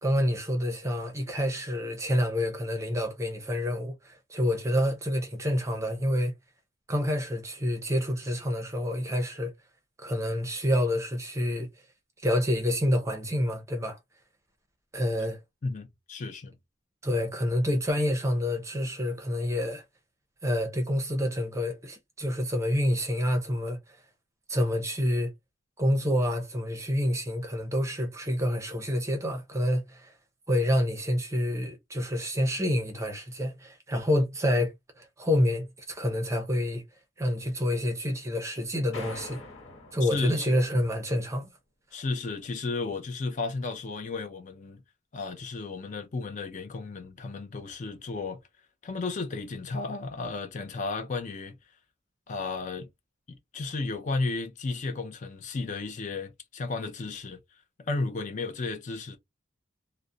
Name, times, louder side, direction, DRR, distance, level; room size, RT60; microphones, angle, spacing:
voice 1, 0.0-6.3 6.9-9.5 10.0-11.7 12.2-14.0 14.9-15.4 17.0-19.8 20.4-24.0 24.5-25.3 25.8-30.1 30.5-36.8 37.2-39.4 39.9-41.5, equal, 15° right, 0.5 m, -28 dB
voice 2, 15.6-16.5 40.0-40.5 41.9-44.8 45.1-48.4 48.8-51.6 52.3-52.9 53.3-57.4 57.8-59.2, left 3 dB, 40° left, 0.4 m, -33 dB
sound 1, 38.9-40.9, left 3 dB, 80° left, 1.2 m, -44 dB
2.4 x 2.0 x 2.5 m
head